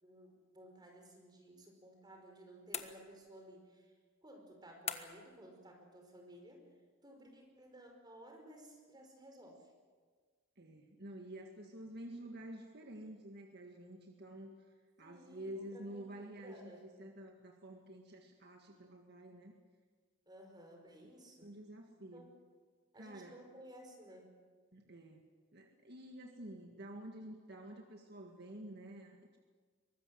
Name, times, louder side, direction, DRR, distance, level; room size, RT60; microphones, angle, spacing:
voice 1, 0.0-3.9 4.2-6.7 7.0-9.7 15.0-16.9 20.3-21.5 22.1-22.3 22.9-24.3, right 1 dB, 20° right, 2 dB, 5.1 m, -56 dB
sound 1, 2.7-3.5 4.9-5.4, left 7 dB, 30° left, 1.4 m, -43 dB
voice 2, 10.6-14.5 15.0-19.5 21.0-21.1 21.4-22.3 23.0-23.4 24.7-29.4, right 1 dB, 55° right, 2 dB, 1.9 m, -50 dB
23.5 x 19.5 x 7.9 m, 1.5 s
head